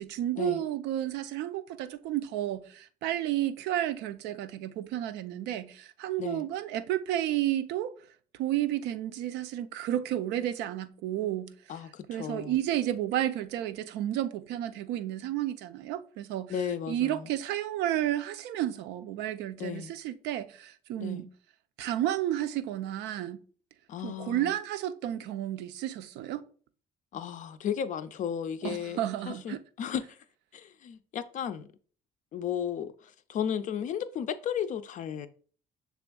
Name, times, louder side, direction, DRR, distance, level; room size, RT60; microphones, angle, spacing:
voice 1, 0.0-7.9 8.4-11.5 12.1-16.5 16.9-21.3 21.8-23.4 24.0-26.4 28.6-29.6, right 12 dB, 85° right, 0.4 m, -32 dB
voice 2, 11.7-12.6 16.5-17.3 19.6-19.9 21.0-21.3 23.9-24.5 27.1-30.2 30.5-31.7 32.3-35.3, left 8 dB, 50° left, 0.4 m, -34 dB
6.0 x 3.4 x 2.3 m
cardioid pair, 110°, 17 cm